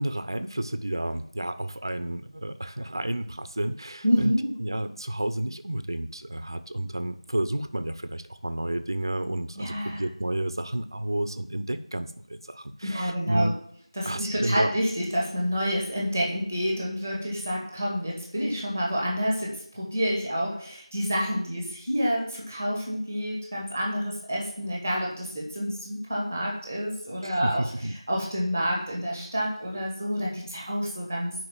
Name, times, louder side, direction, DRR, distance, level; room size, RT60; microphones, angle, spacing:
voice 1, 0.0-13.5 14.0-14.7 27.2-27.9, right 1 dB, 45° right, 11 dB, 0.8 m, -31 dB
voice 2, 4.0-4.5 9.5-10.0 12.9-13.5 13.9-27.7 28.1-31.4, equal, ahead, -3 dB, 1.5 m, -28 dB
9.2 x 5.5 x 7.3 m, 0.65 s
figure-of-eight pair, 175°, 3 cm